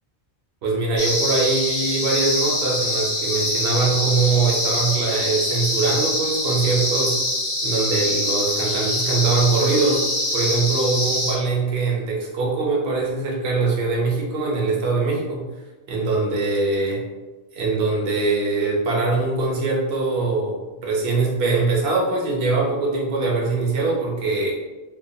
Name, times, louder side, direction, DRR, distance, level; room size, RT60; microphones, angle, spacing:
voice 1, 0.6-7.2 7.6-10.0 10.3-15.5 15.9-17.0 17.5-24.5, right 3 dB, 65° right, -2 dB, 0.9 m, -22 dB
sound 1, 1.0-11.3, left 1 dB, 55° left, 1.2 m, -24 dB
2.8 x 2.3 x 2.6 m, 1.2 s
omnidirectional pair, 1.2 m